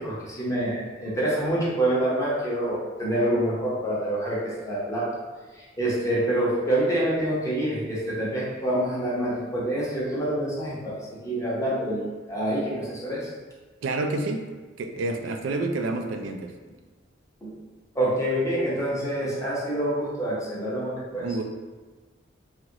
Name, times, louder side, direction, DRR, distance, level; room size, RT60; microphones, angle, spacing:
voice 1, 0.0-5.1 5.5-13.3 17.4-17.5 17.9-21.2, right 1 dB, 15° left, -7 dB, 0.8 m, -26 dB
voice 2, 13.8-14.5 14.8-16.5 21.1-21.4, right 2 dB, 80° right, 4 dB, 0.3 m, -28 dB
2.9 x 2.4 x 2.8 m, 1.3 s
head